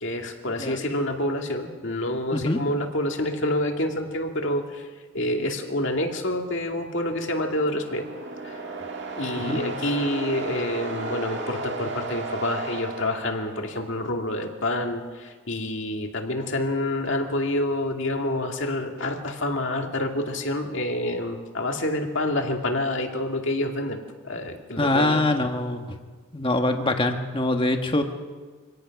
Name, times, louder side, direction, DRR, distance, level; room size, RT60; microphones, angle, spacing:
voice 1, 0.0-4.9 5.1-8.0 8.4-8.6 9.1-25.2, left 1 dB, 55° left, 3 dB, 2.3 m, -27 dB
sound 1, 6.9-14.0, right 3 dB, 50° right, 2.2 m, -34 dB
voice 2, 24.8-26.0 26.3-28.0, left 2 dB, 25° left, 5 dB, 1.5 m, -24 dB
26.0 x 17.5 x 6.0 m, 1.4 s
head